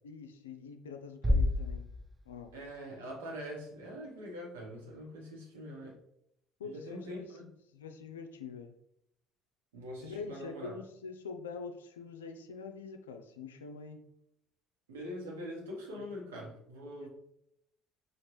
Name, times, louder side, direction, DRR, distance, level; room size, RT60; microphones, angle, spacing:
voice 1, 0.0-1.9 2.3-2.5 6.6-8.7 10.0-14.0, left 5 dB, 85° left, 6 dB, 0.4 m, -45 dB
Bass drum, 1.2-2.9, left 1 dB, 15° right, 0.5 m, -31 dB
voice 2, 2.5-5.9 6.6-7.5 9.7-10.7 14.9-17.1, equal, 80° right, -3 dB, 1.0 m, -43 dB
5.1 x 2.4 x 3.0 m, 0.76 s
hypercardioid pair, 55°, 0 cm